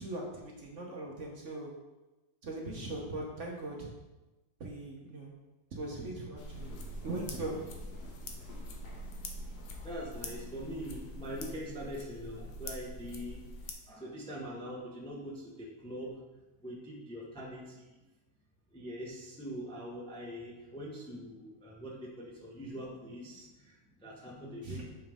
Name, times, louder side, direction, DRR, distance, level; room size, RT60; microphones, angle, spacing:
voice 1, 0.0-1.7 2.4-3.9 4.6-5.3 5.7-6.7 7.0-7.7 24.6-24.8, right 2 dB, 45° right, -1 dB, 1.2 m, -40 dB
sound 1, 6.4-13.7, left 1 dB, 80° left, 1.6 m, -44 dB
sound 2, 6.5-11.5, left 3 dB, 65° left, 1.9 m, -51 dB
voice 2, 9.8-13.4 13.9-16.1 16.6-18.0 18.7-24.8, equal, 5° left, -3 dB, 0.7 m, -43 dB
7.2 x 5.6 x 3.7 m, 1.1 s
omnidirectional pair, 2.0 m